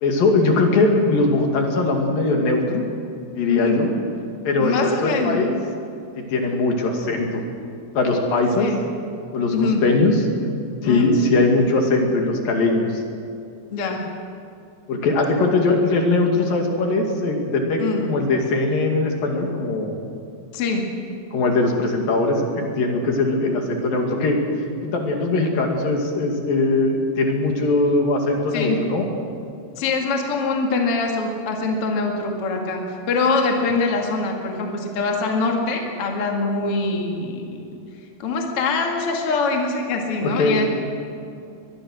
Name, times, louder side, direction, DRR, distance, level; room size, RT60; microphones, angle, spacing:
voice 1, 0.0-2.9 3.4-4.0 4.4-5.5 6.2-7.4 8.0-8.7 9.3-10.2 10.8-13.0 14.9-19.9 21.3-24.4 24.9-29.1 40.2-40.7, left 2 dB, 60° left, 2 dB, 3.7 m, -20 dB
voice 2, 3.5-3.8 4.6-5.4 8.6-8.8 9.5-9.9 10.8-11.1 13.7-14.1 17.8-18.1 20.5-20.9 28.5-28.8 29.8-37.8 38.2-40.7, left 3 dB, 45° left, 1 dB, 2.4 m, -23 dB
22.5 x 22.0 x 6.4 m, 2.5 s
omnidirectional pair, 4.8 m